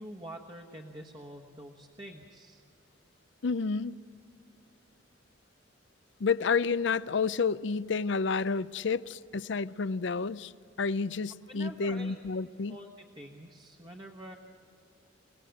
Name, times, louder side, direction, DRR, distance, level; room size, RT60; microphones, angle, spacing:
voice 1, 0.0-2.6 11.5-12.2 12.7-14.4, right 1 dB, 25° right, 1.3 m, -46 dB
voice 2, 3.4-3.9 6.2-10.5 10.8-12.8, left 5 dB, 65° left, 0.5 m, -30 dB
29.0 x 18.5 x 7.8 m
head